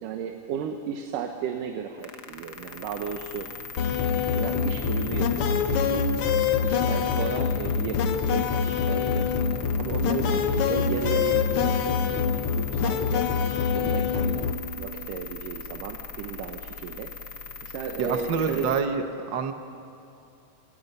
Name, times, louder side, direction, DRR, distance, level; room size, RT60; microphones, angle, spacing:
voice 1, 0.0-3.5 4.3-6.1 6.6-9.3 9.8-13.2 13.7-17.1 17.6-18.7, right 7 dB, 80° right, 4 dB, 2.7 m, -35 dB
sound 1, 2.0-18.8, left 5 dB, 85° left, 0.8 m, -40 dB
sound 2, 3.8-14.5, left 6 dB, 70° left, 1.3 m, -25 dB
voice 2, 10.1-10.4 18.0-19.5, right 5 dB, 60° right, 6 dB, 1.1 m, -28 dB
30.0 x 27.5 x 5.6 m, 2.6 s
omnidirectional pair, 3.8 m